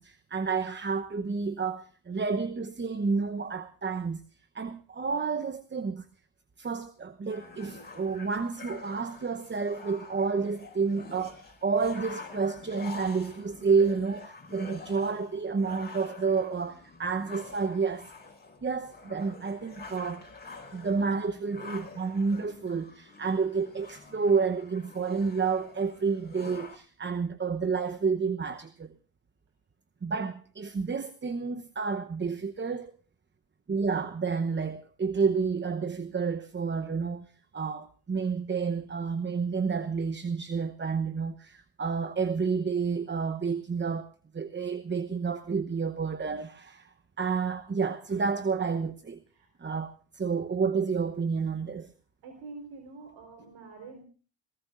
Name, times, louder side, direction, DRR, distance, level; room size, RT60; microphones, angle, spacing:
voice 1, 0.0-4.2 4.5-6.0 6.6-18.1 18.6-20.2 20.7-28.9 30.0-32.9 33.7-49.2 49.6-51.9, right 5 dB, 25° right, 0.9 m, -30 dB
sound 1, 7.3-26.8, left 4 dB, 20° left, 5.0 m, -47 dB
voice 2, 52.2-54.0, right 3 dB, 70° right, 4.4 m, -46 dB
27.5 x 17.5 x 2.6 m
supercardioid pair, 55°, 47 cm